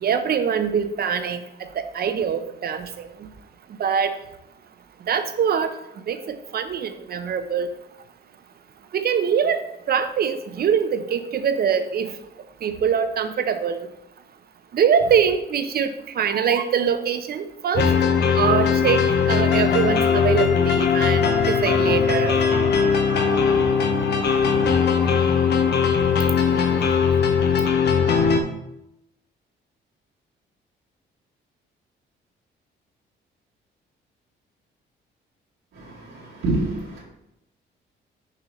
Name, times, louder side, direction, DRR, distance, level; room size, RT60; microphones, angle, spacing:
voice 1, 0.0-3.1 3.8-4.1 5.1-5.7 6.1-7.7 8.9-12.1 12.6-13.9 14.7-17.8 18.3-22.4, right 7 dB, 50° right, 9 dB, 0.7 m, -23 dB
sound 1, 17.7-28.4, left 6 dB, 60° left, 0.9 m, -19 dB
voice 2, 35.7-37.0, right 2 dB, 85° right, -6 dB, 2.1 m, -27 dB
6.7 x 5.4 x 3.1 m, 0.84 s
cardioid pair, 90°, 20 cm